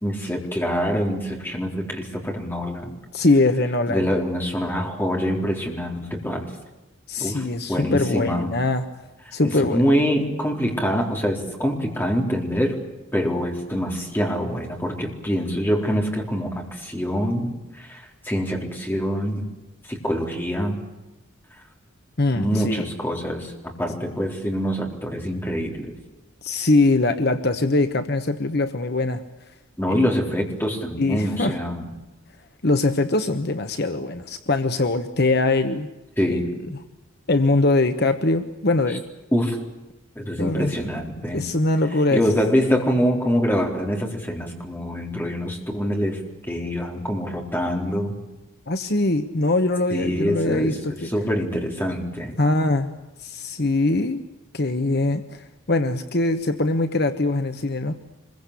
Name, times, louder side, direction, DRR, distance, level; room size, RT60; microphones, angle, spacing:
voice 1, 0.0-3.0 3.9-6.5 7.2-8.5 9.3-12.8 13.1-19.5 19.9-20.8 22.3-26.0 29.8-31.9 36.2-36.6 39.3-39.6 40.2-41.4 42.1-48.2 49.9-50.8 51.0-52.3, equal, 10° left, 1 dB, 4.1 m, -25 dB
voice 2, 3.1-4.0 7.1-8.8 9.3-9.8 22.2-22.8 26.4-29.2 29.9-30.1 31.0-31.6 32.6-35.9 36.3-36.4 37.3-39.0 40.4-40.7 41.3-42.2 48.7-50.9 52.4-52.9 53.2-54.2 54.5-58.0, left 2 dB, 50° left, 8 dB, 1.2 m, -22 dB
25.5 x 22.5 x 8.4 m, 1.0 s
head